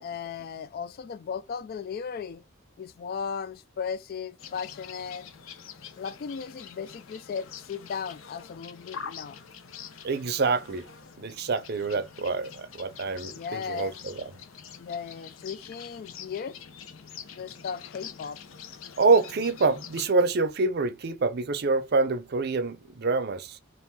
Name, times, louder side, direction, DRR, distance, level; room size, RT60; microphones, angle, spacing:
voice 1, 0.0-2.4 2.8-5.3 6.0-9.4 13.3-14.0 14.8-16.6 17.3-18.4, left 6 dB, 50° left, 0.3 m, -36 dB
sound 1, 4.4-20.1, left 7 dB, 85° left, 0.7 m, -45 dB
voice 2, 10.0-10.9 11.2-14.1 19.0-23.6, right 3 dB, 55° right, 0.6 m, -26 dB
3.7 x 2.6 x 4.1 m
head